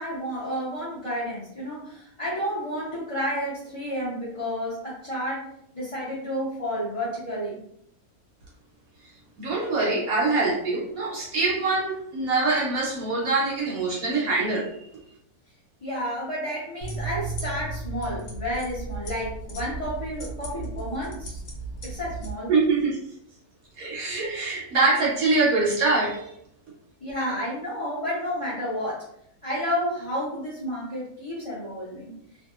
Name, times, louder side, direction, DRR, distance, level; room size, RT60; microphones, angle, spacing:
voice 1, 0.0-5.5 5.7-7.5 15.8-21.4 21.8-22.5 27.0-29.0 29.4-32.1, equal, 35° left, -10 dB, 0.5 m, -31 dB
voice 2, 9.4-14.7 22.5-23.0 23.8-26.3, right 3 dB, 70° right, -4 dB, 1.0 m, -24 dB
sound 1, 16.8-22.3, right 3 dB, 70° left, 1.2 m, -35 dB
2.7 x 2.2 x 2.3 m, 0.71 s
omnidirectional pair, 1.6 m